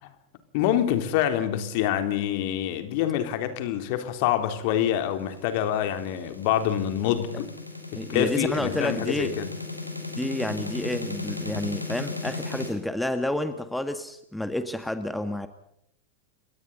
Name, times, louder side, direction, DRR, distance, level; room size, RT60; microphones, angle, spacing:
voice 1, 0.5-7.5 7.9-9.5, left 11 dB, 45° left, 3.4 m, -26 dB
sound 1, 4.6-12.7, left 3 dB, 90° left, 5.3 m, -36 dB
voice 2, 7.9-9.4 10.2-15.5, left 1 dB, 5° left, 1.7 m, -30 dB
29.5 x 23.5 x 4.1 m
figure-of-eight pair, 90°, 0 cm